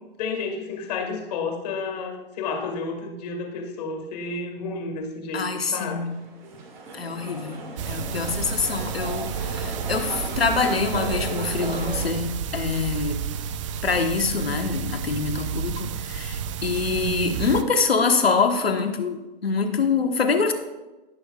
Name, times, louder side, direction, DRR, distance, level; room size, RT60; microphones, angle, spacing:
voice 1, 0.2-5.4 5.7-6.0, left 4 dB, 45° left, 3 dB, 2.0 m, -31 dB
voice 2, 5.3-6.2 6.9-13.2 13.8-20.5, left 4 dB, 85° left, 6 dB, 1.3 m, -25 dB
sound 1, 6.0-12.1, right 3 dB, 50° right, 2.0 m, -35 dB
sound 2, 7.8-17.6, right 7 dB, 35° right, 0.5 m, -31 dB
17.0 x 6.4 x 2.4 m, 1.1 s
figure-of-eight pair, 125°, 29 cm